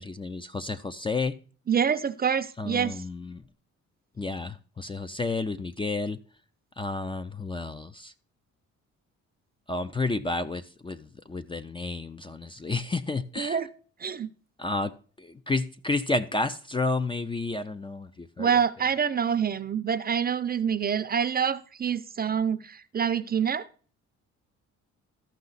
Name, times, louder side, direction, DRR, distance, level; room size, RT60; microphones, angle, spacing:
voice 1, 0.0-1.3 2.6-3.4 4.2-6.2 6.8-8.1 9.7-13.6 14.6-18.5, left 3 dB, 15° left, 10 dB, 0.4 m, -31 dB
voice 2, 1.7-3.0 13.4-13.7 14.0-14.3 18.4-23.7, right 7 dB, 30° right, 13 dB, 0.5 m, -26 dB
13.5 x 5.7 x 4.0 m, 0.41 s
cardioid pair, 90°, 30 cm